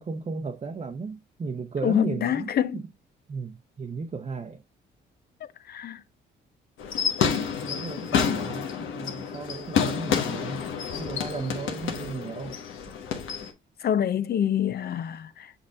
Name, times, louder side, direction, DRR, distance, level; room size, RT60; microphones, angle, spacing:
voice 1, 0.0-2.8 3.3-4.6 7.6-10.6 10.9-12.6, right 4 dB, 30° right, 0.7 m, -35 dB
voice 2, 1.8-2.8 5.7-6.0 13.8-15.5, left 9 dB, 50° left, 0.6 m, -26 dB
sound 1, 6.8-13.5, left 7 dB, 80° left, 1.2 m, -29 dB
6.5 x 6.0 x 2.4 m
cardioid pair, 90°, 20 cm